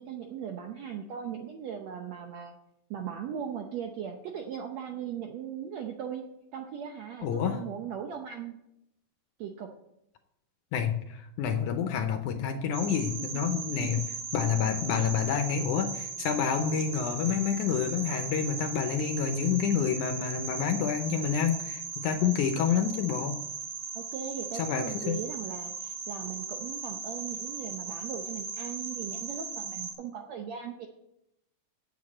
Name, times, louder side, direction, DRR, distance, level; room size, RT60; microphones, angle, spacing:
voice 1, 0.0-2.5 2.9-8.5 9.4-9.9 13.3-13.4 13.8-14.0 14.9-15.0 16.7-16.8 23.9-30.9, right 8 dB, 75° right, 4 dB, 1.6 m, -38 dB
voice 2, 7.2-7.6 10.7-14.0 14.3-23.4 24.6-25.2, left 7 dB, 75° left, 7 dB, 1.9 m, -28 dB
sound 1, 12.7-29.9, right 5 dB, 55° right, 3.0 m, -38 dB
8.6 x 7.3 x 8.4 m, 0.84 s
omnidirectional pair, 4.1 m